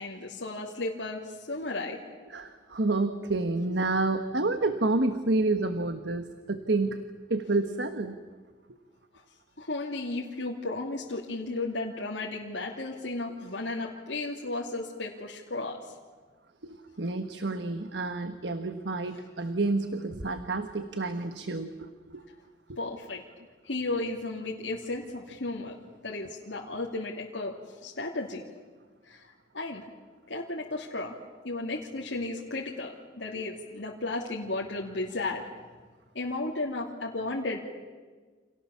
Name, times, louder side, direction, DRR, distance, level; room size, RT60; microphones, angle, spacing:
voice 1, 0.0-2.0 9.6-15.9 22.8-23.2 23.6-25.8 26.0-28.4 29.0-29.8 30.3-31.2 31.4-35.4 36.1-37.6, left 2 dB, 85° left, -2 dB, 2.8 m, -34 dB
voice 2, 2.3-7.0 7.3-8.2 16.6-22.2 22.7-22.8, right 2 dB, 70° right, 8 dB, 1.4 m, -29 dB
29.5 x 28.0 x 7.1 m, 1.4 s
head